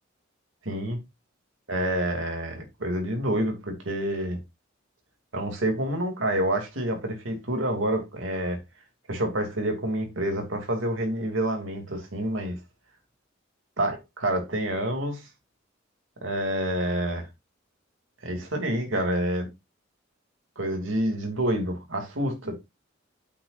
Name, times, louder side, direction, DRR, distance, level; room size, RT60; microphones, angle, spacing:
voice 1, 0.6-1.0 1.7-4.4 5.3-8.6 9.1-12.6 13.8-15.3 16.2-17.3 18.2-19.5 20.6-22.6, right 1 dB, 75° right, 2.7 m, -28 dB
8.6 x 8.4 x 2.6 m
head